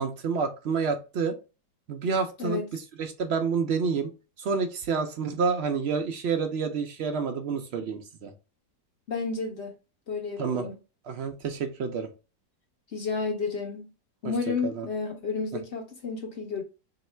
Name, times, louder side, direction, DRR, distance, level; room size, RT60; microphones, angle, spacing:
voice 1, 0.0-1.4 1.9-4.1 4.4-8.3 10.4-10.6 11.1-12.1 14.6-14.9, right 5 dB, 70° right, 0.6 m, -29 dB
voice 2, 9.1-9.7 10.1-10.8 12.9-13.9 14.2-16.6, left 4 dB, 55° left, 0.8 m, -31 dB
3.1 x 2.9 x 4.2 m
omnidirectional pair, 1.7 m